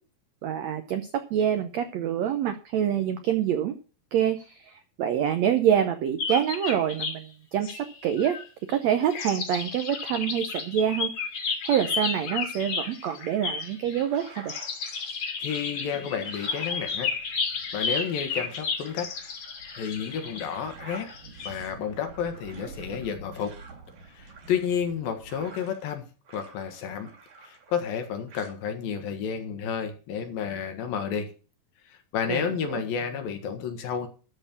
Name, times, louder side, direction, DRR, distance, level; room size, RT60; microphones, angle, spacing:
voice 1, 0.4-3.7 4.1-8.4 8.7-11.1 11.6-14.5 32.3-32.8, right 9 dB, 85° right, 8 dB, 1.5 m, -26 dB
sound 1, 6.2-7.2 7.6-8.8 9.1-21.5, left 5 dB, 50° left, 2.4 m, -33 dB
sound 2, 13.9-15.2 15.7-26.0 26.2-28.0 28.3-28.6, right 4 dB, 70° right, 4.2 m, -50 dB
voice 2, 15.4-17.1 17.7-19.1 19.8-21.1 21.4-23.5 24.1-26.1 26.3-27.1 27.4-31.3 31.9-34.1, left 7 dB, 75° left, 6 dB, 3.2 m, -31 dB
sound 3, 16.8-25.6, right 3 dB, 55° right, 2.6 m, -50 dB
13.0 x 4.4 x 8.5 m, 0.37 s
omnidirectional pair, 4.2 m